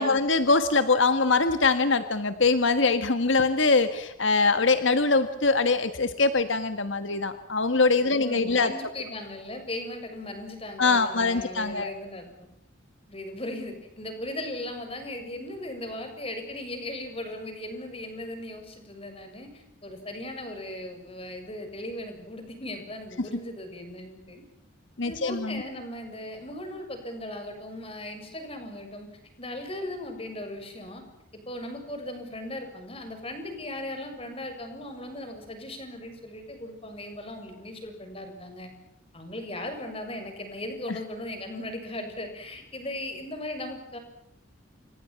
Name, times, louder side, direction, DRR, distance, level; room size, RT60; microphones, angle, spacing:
voice 1, 0.0-8.7 10.8-11.9 23.2-23.3 25.0-25.6 40.9-41.0, left 3 dB, 75° left, 10 dB, 1.7 m, -23 dB
voice 2, 8.0-12.5 13.1-24.4 25.0-29.1 29.4-31.0 31.3-38.7 39.1-44.0, left 1 dB, 30° left, 6 dB, 7.1 m, -38 dB
29.5 x 27.0 x 6.0 m, 0.80 s
head